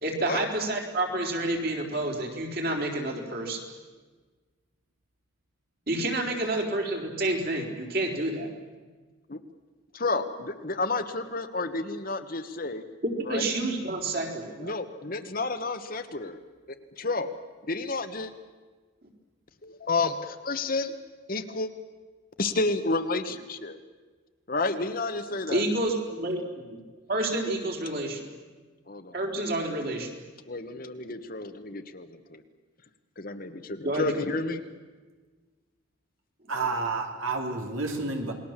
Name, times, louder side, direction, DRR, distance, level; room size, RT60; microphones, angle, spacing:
voice 1, 0.0-3.6 5.9-8.5 13.0-14.8 25.5-26.7 27.1-28.2 29.1-30.1 33.8-34.1, right 2 dB, 45° right, 2 dB, 4.2 m, -29 dB
voice 2, 9.9-12.8 13.2-13.5 14.6-16.4 17.0-17.3 17.7-18.3 19.6-20.9 21.3-21.7 22.4-23.8 24.5-25.6 28.9-29.2 30.5-32.4 33.2-34.6, left 3 dB, 45° left, 8 dB, 1.4 m, -30 dB
voice 3, 36.5-38.3, right 3 dB, 80° right, 3 dB, 3.7 m, -30 dB
28.5 x 21.0 x 7.5 m, 1.4 s
head